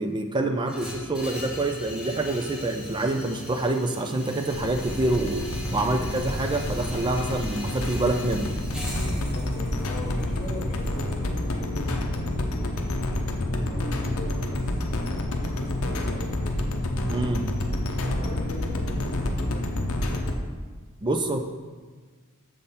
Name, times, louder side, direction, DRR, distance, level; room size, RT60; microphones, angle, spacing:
voice 1, 0.0-5.4 5.7-8.5 17.1-17.5 21.0-21.4, right 2 dB, 20° right, 5 dB, 0.4 m, -26 dB
sound 1, 0.7-12.7, equal, 5° right, 1.0 m, -38 dB
sound 2, 4.5-20.3, left 1 dB, 70° left, 0.6 m, -29 dB
voice 2, 9.1-12.3 12.8-17.0 18.0-19.7, left 1 dB, 30° left, -3 dB, 1.5 m, -39 dB
6.7 x 3.8 x 4.2 m, 1.5 s
head